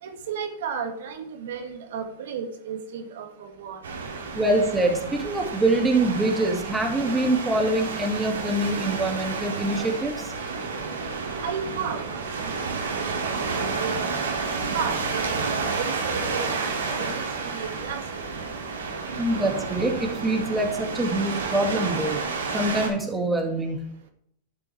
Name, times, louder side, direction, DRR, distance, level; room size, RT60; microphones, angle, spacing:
voice 1, 0.0-3.9 11.4-14.3 14.7-18.5 18.8-18.9, right 6 dB, 70° right, 4 dB, 1.9 m, -34 dB
sound 1, 3.8-22.9, right 4 dB, 85° right, 2.5 m, -30 dB
voice 2, 4.4-10.3 19.2-22.2 22.5-23.8, right 2 dB, 10° right, 1 dB, 2.1 m, -24 dB
11.5 x 7.0 x 3.3 m, 0.70 s
hypercardioid pair, 105°, 0 cm